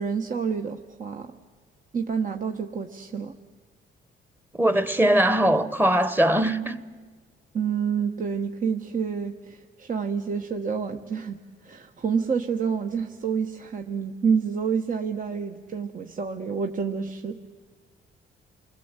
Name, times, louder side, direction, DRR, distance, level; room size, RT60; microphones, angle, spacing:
voice 1, 0.0-1.3 1.9-3.3 7.5-11.4 11.6-17.5, right 6 dB, 40° right, 1.2 m, -28 dB
voice 2, 4.5-6.8, right 1 dB, 10° right, 1.2 m, -21 dB
28.5 x 21.0 x 8.2 m
cardioid pair, 90°, 20 cm